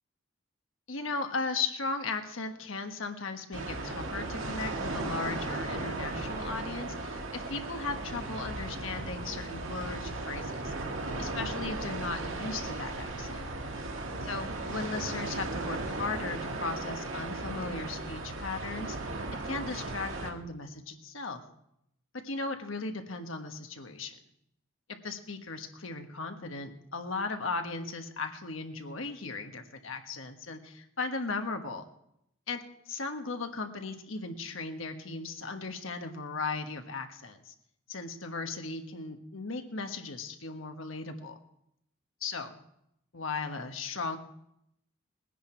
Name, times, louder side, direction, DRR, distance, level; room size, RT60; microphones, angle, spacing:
voice 1, 0.9-10.7 11.2-13.4 14.2-19.0 19.4-21.4 22.2-24.2 25.0-31.8 32.5-32.6 32.9-37.5 37.9-41.4 42.2-42.5 43.1-44.2, left 3 dB, 85° left, 5 dB, 1.4 m, -37 dB
sound 1, 3.5-20.3, right 2 dB, 85° right, 1.8 m, -36 dB
20.0 x 10.0 x 4.5 m, 0.78 s
head